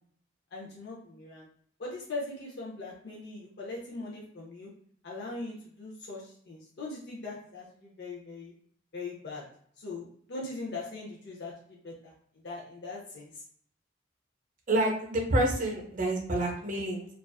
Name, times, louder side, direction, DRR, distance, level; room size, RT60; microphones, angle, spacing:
voice 1, 0.5-1.5 1.8-4.7 5.0-8.5 8.9-9.4 9.8-12.1 12.4-13.4, left 3 dB, 55° left, -4 dB, 0.5 m, -40 dB
voice 2, 14.7-17.1, right 1 dB, 40° right, 1 dB, 0.6 m, -28 dB
2.3 x 2.3 x 2.2 m, 0.63 s
head